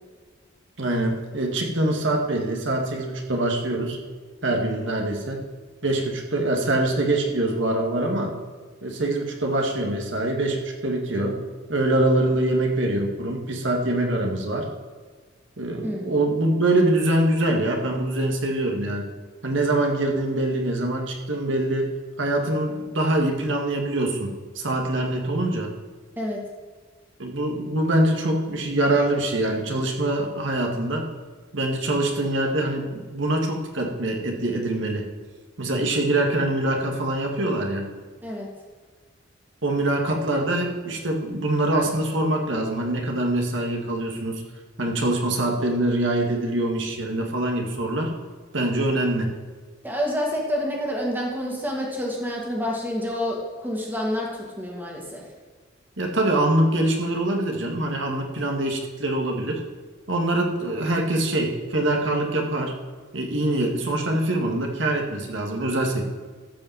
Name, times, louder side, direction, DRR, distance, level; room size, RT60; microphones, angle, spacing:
voice 1, 0.8-4.0 4.4-5.4 5.8-8.3 8.8-11.4 11.7-14.7 15.6-19.1 19.4-21.9 22.2-25.7 27.2-31.1 31.5-35.0 35.6-37.9 39.6-44.4 44.8-48.1 48.5-49.3 56.0-59.6 60.1-62.7 63.1-66.1, right 1 dB, 65° right, 1 dB, 1.9 m, -24 dB
voice 2, 15.8-16.2 26.2-26.4 38.2-38.5 49.8-55.2, equal, 10° right, -2 dB, 2.3 m, -28 dB
13.5 x 5.5 x 7.3 m, 1.5 s
head